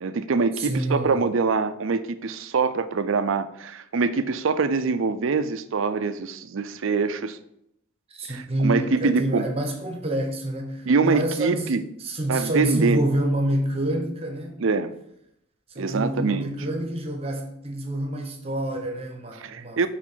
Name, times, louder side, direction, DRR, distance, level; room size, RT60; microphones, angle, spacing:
voice 1, 0.0-7.4 8.3-9.4 10.9-11.8 12.3-13.0 14.6-14.9 15.8-16.4 19.4-19.9, right 4 dB, 60° right, 0.4 m, -24 dB
voice 2, 0.6-1.2 8.1-14.5 15.7-19.9, right 1 dB, 25° right, 0.9 m, -27 dB
5.0 x 4.4 x 5.5 m
head